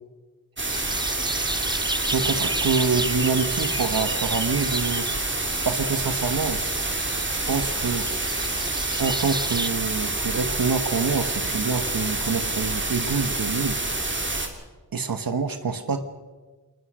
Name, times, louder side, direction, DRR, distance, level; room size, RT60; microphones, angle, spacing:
sound 1, 0.6-14.5, right 2 dB, 30° right, 2.8 m, -27 dB
sound 2, 0.7-9.7, right 2 dB, 10° right, 1.0 m, -33 dB
voice 1, 2.1-5.1 5.6-6.6 7.5-8.1 9.0-13.8 14.9-16.0, right 5 dB, 70° right, 9 dB, 1.3 m, -26 dB
21.0 x 20.0 x 6.4 m, 1.3 s
wide cardioid pair, 70°, 36 cm